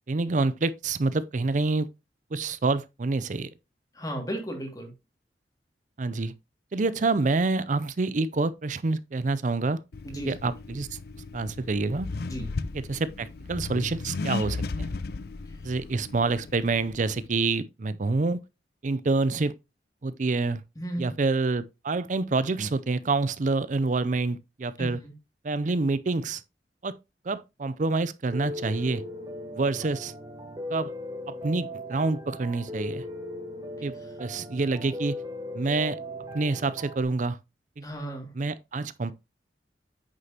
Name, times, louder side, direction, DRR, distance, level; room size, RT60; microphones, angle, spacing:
voice 1, 0.1-1.9 2.3-3.5 6.0-6.3 6.7-9.8 10.1-10.9 11.3-12.1 12.7-14.9 15.6-18.4 18.8-19.5 20.0-20.6 21.0-25.0 25.4-26.4 26.8-26.9 27.2-29.0 29.5-30.1 30.7-30.9 31.3-33.0 33.8-33.9 34.2-35.2 35.5-36.0 36.3-37.4 37.8-37.9 38.3-39.1, right 3 dB, 45° right, 0.5 m, -27 dB
voice 2, 3.9-4.9 10.0-10.3 12.3-12.5 20.8-21.0 24.8-25.1 37.8-38.3, right 1 dB, 20° left, 2.2 m, -34 dB
Accelerating revving vroom, 9.9-17.3, left 3 dB, 60° left, 0.5 m, -36 dB
Piano, 28.3-37.0, left 1 dB, 20° right, 1.3 m, -38 dB
9.0 x 6.6 x 2.9 m
head